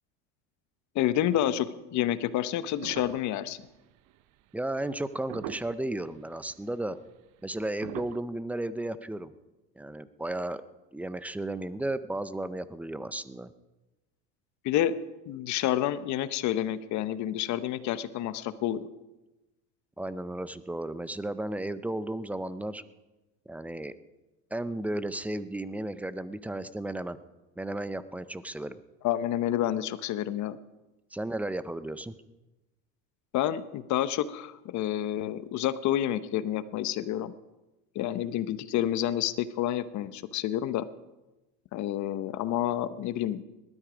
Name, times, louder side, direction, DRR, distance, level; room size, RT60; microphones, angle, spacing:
voice 1, 0.9-3.6 14.6-14.9 15.3-18.8 29.0-30.6 33.3-37.3 37.9-40.9 41.7-43.4, left 12 dB, 50° left, 14 dB, 0.8 m, -29 dB
sound 1, 2.8-4.1 4.9-5.0 5.3-5.9 6.7-6.8 7.8-8.2, right 13 dB, 50° right, 0.7 m, -41 dB
voice 2, 4.5-7.0 7.4-9.3 9.8-10.6 10.9-13.5 20.0-22.8 23.5-23.9 24.5-27.2 27.6-28.8 31.1-32.1, right 1 dB, 5° right, 14 dB, 0.4 m, -34 dB
19.0 x 12.5 x 5.0 m, 1.0 s
supercardioid pair, 120°, 38 cm